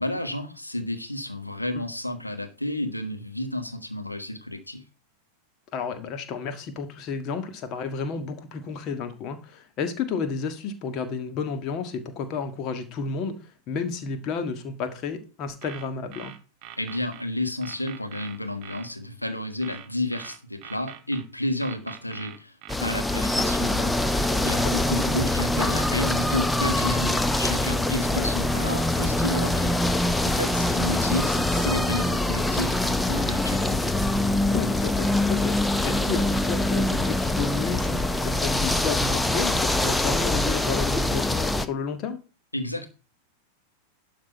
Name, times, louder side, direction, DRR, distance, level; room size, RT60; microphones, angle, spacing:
voice 1, 0.0-4.8 16.8-33.8 42.5-42.9, left 1 dB, 85° left, 1.5 m, -31 dB
voice 2, 5.7-16.3 24.6-24.7 28.2-28.3 34.5-35.6 35.8-42.2, left 5 dB, 35° left, 1.7 m, -31 dB
sound 1, 15.5-17.2 17.6-18.9 19.6-21.2 21.6-23.2, right 11 dB, 40° right, 1.6 m, -43 dB
sound 2, 22.7-41.7, left 1 dB, 5° left, 0.7 m, -24 dB
11.5 x 6.0 x 4.6 m
figure-of-eight pair, 90°, 0 cm